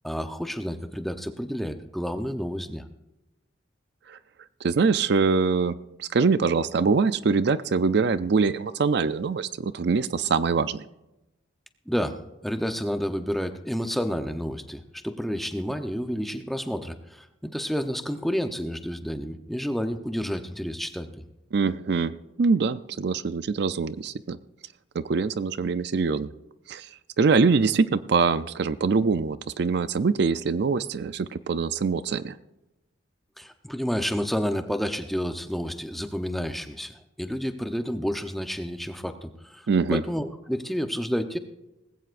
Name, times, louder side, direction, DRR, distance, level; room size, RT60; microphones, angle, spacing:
voice 1, 0.0-2.9 11.9-21.2 33.4-41.4, equal, ahead, 7 dB, 0.7 m, -30 dB
voice 2, 4.6-10.8 21.5-24.4 24.9-26.3 26.7-26.9 27.2-32.4 39.7-40.0, right 4 dB, 55° right, 14 dB, 0.4 m, -24 dB
19.5 x 16.0 x 2.5 m, 0.96 s
head